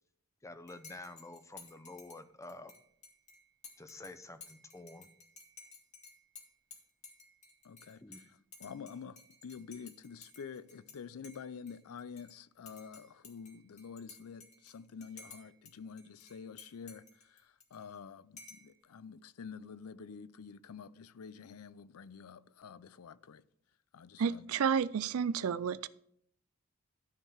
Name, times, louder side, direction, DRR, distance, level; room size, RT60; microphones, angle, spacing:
voice 1, 0.4-2.7 3.8-5.1 8.0-8.2, left 2 dB, 15° left, 0.7 m, -49 dB
Dishes pots and pans / Cutlery silverware / Chink clink, 0.7-11.0 11.2-12.3 12.7-15.7 16.0-18.0 18.4-18.7, left 4 dB, 35° left, 2.0 m, -55 dB
voice 2, 7.6-23.4 23.9-24.5, left 6 dB, 80° left, 0.5 m, -48 dB
voice 3, 24.2-25.9, right 7 dB, 70° right, 0.4 m, -31 dB
13.0 x 4.6 x 7.2 m
head